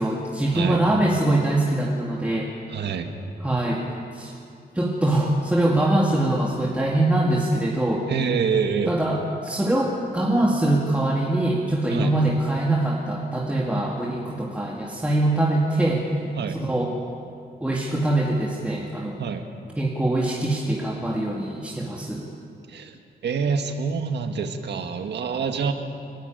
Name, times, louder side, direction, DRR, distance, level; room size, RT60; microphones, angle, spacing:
voice 1, 0.0-2.5 3.4-3.9 4.1-4.3 4.7-8.1 8.9-16.0 16.5-17.0 17.6-19.2 19.8-22.3, right 1 dB, 5° right, -3 dB, 2.2 m, -23 dB
voice 2, 2.7-3.1 8.1-9.0 11.9-12.1 16.4-16.7 19.2-19.5 22.7-25.7, right 6 dB, 85° right, 6 dB, 1.8 m, -26 dB
29.5 x 12.0 x 9.2 m, 2.5 s
wide cardioid pair, 110°, 17 cm